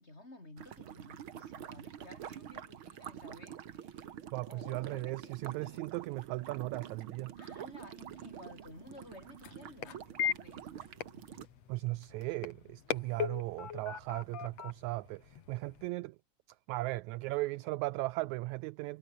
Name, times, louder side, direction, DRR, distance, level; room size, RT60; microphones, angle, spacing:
voice 1, 0.0-4.1 4.4-5.8 7.4-10.7, left 2 dB, 20° left, 4.5 m, -54 dB
sound 1, 0.6-11.5, right 9 dB, 50° right, 1.7 m, -47 dB
voice 2, 4.3-7.3 11.7-16.2 16.7-19.0, right 20 dB, 80° right, 1.7 m, -37 dB
sound 2, 8.0-15.9, left 8 dB, 55° left, 2.9 m, -41 dB
omnidirectional pair, 3.6 m